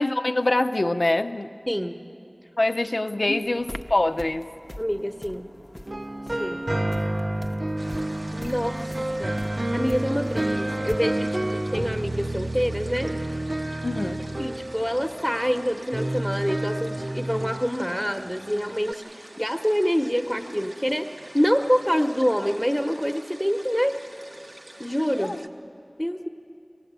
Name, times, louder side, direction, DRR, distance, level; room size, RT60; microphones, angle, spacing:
voice 1, 0.0-1.5 2.6-4.5 13.8-14.2 25.2-25.4, left 2 dB, 85° left, 8 dB, 0.6 m, -24 dB
voice 2, 1.7-2.0 3.2-3.4 4.8-5.5 6.4-6.6 8.3-13.1 14.4-24.0 24.8-25.4 26.0-26.3, equal, 5° left, 3 dB, 1.0 m, -26 dB
sound 1, 3.4-11.0, left 1 dB, 35° left, 0.7 m, -43 dB
sound 2, 5.9-18.9, right 1 dB, 55° right, 0.5 m, -30 dB
sound 3, 7.8-25.5, right 1 dB, 90° right, 1.0 m, -46 dB
24.0 x 17.5 x 8.2 m, 2.7 s
wide cardioid pair, 40°, 0 cm